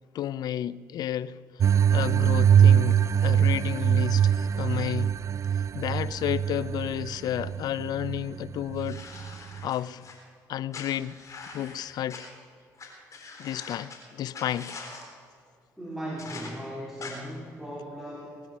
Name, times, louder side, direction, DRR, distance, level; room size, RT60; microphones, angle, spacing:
voice 1, 0.1-5.1 5.7-9.0 9.6-10.1 10.5-11.2 11.5-12.3 13.4-14.8, left 11 dB, 65° left, 0.4 m, -32 dB
sound 1, 1.6-9.7, right 9 dB, 45° right, 0.3 m, -23 dB
sound 2, 8.8-10.1 10.7-12.2 12.8-12.9 13.1-14.0 14.3-15.0 16.2-16.5 17.0-17.1, left 4 dB, 45° left, 3.8 m, -43 dB
voice 2, 15.8-18.6, equal, 5° right, 3.3 m, -38 dB
20.0 x 9.7 x 6.1 m
supercardioid pair, 65°, 7 cm